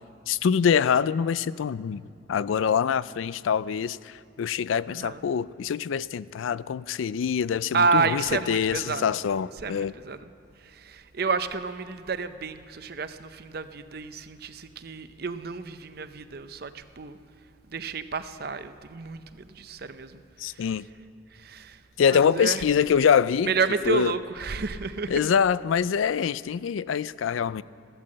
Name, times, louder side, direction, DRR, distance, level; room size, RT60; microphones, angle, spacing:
voice 1, 0.3-9.9 20.4-20.9 22.0-23.5 23.9-24.1 25.1-27.6, left 7 dB, 85° left, 18 dB, 0.4 m, -25 dB
voice 2, 4.9-5.2 7.7-9.2 9.6-10.3 10.6-17.2 17.7-20.7 21.3-21.8 22.1-22.6 23.4-25.3, right 4 dB, 50° right, 11 dB, 0.6 m, -30 dB
15.5 x 12.5 x 7.5 m, 2.4 s
head